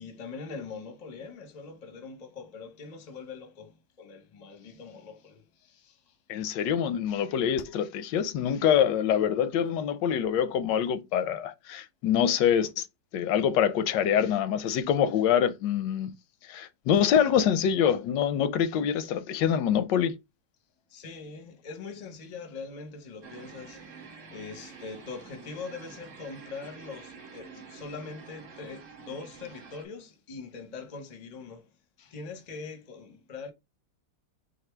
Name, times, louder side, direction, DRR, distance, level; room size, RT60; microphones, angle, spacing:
voice 1, 0.0-6.2 20.9-33.5, left 4 dB, 40° left, 0.6 m, -42 dB
voice 2, 6.3-12.9 13.1-16.1 16.5-20.2, left 9 dB, 85° left, 1.2 m, -25 dB
sound 1, 23.2-29.8, right 5 dB, 55° right, 1.2 m, -48 dB
4.2 x 2.7 x 4.4 m
omnidirectional pair, 1.9 m